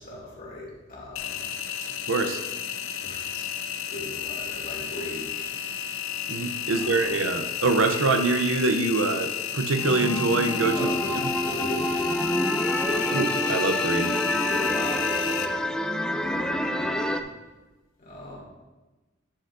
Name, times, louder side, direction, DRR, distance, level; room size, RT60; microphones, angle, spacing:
voice 1, 0.0-1.4 3.0-3.5 3.9-5.5 6.6-7.1 10.7-13.2 14.2-15.5 16.2-17.2 18.0-18.4, left 1 dB, 45° left, -4 dB, 2.7 m, -38 dB
Engine, 1.2-15.5, left 10 dB, 70° left, 0.5 m, -32 dB
voice 2, 2.1-2.4 6.3-10.8 13.1-14.1, right 3 dB, 80° right, 8 dB, 0.7 m, -24 dB
sound 1, 9.7-17.2, equal, 5° left, 0.4 m, -28 dB
10.0 x 7.8 x 2.6 m, 1.1 s
head